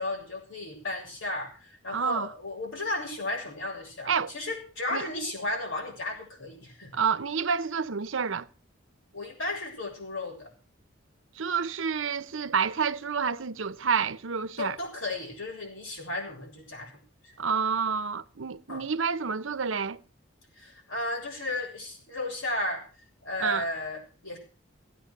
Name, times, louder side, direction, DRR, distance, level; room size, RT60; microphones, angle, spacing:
voice 1, 0.0-7.0 9.1-10.5 14.6-16.9 17.2-17.3 18.7-18.8 20.6-22.8 23.2-24.4, left 2 dB, 85° left, 7.2 m, -34 dB
voice 2, 1.9-2.3 4.1-4.3 4.9-5.1 6.9-8.5 11.4-14.8 17.4-20.0 23.4-23.6, right 6 dB, 80° right, 0.8 m, -29 dB
17.0 x 9.0 x 6.6 m
head